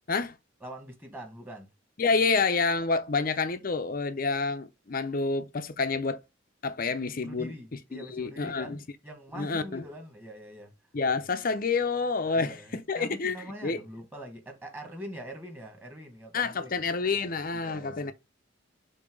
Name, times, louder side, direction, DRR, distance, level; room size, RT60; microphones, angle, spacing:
voice 1, 0.6-1.7 7.2-10.7 12.3-16.7 17.5-18.1, equal, 10° right, 1.8 m, -43 dB
voice 2, 2.0-6.2 6.6-7.5 7.9-8.8 9.3-9.8 10.9-13.3 13.6-13.8 16.3-18.1, left 4 dB, 45° left, 0.7 m, -28 dB
6.9 x 2.8 x 5.2 m
head